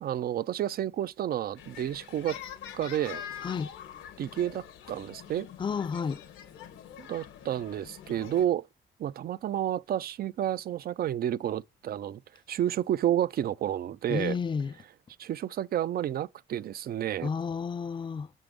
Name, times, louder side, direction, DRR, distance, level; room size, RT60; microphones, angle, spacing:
voice 1, 0.0-2.4 2.7-3.2 4.2-5.5 7.0-8.7 9.0-12.2 12.5-14.4 15.2-17.3, right 11 dB, 50° right, 0.4 m, -30 dB
sound 1, 1.6-8.5, left 9 dB, 85° left, 1.0 m, -45 dB
voice 2, 3.4-3.7 5.6-6.2 14.1-14.7 17.2-18.3, left 6 dB, 25° left, 0.4 m, -31 dB
5.9 x 3.7 x 5.0 m
cardioid pair, 90°, 20 cm